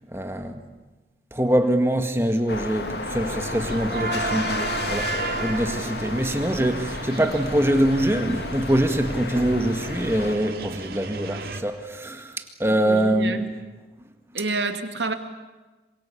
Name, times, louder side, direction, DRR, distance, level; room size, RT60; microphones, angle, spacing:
voice 1, 0.1-0.6 1.3-13.5, right 1 dB, 15° right, 1.9 m, -24 dB
sound 1, 2.5-10.4, left 2 dB, 70° left, 2.4 m, -32 dB
sound 2, 3.2-11.6, right 3 dB, 55° right, 2.4 m, -34 dB
voice 2, 12.9-13.5 14.3-15.1, right 3 dB, 80° right, 2.5 m, -28 dB
27.5 x 24.0 x 8.5 m
head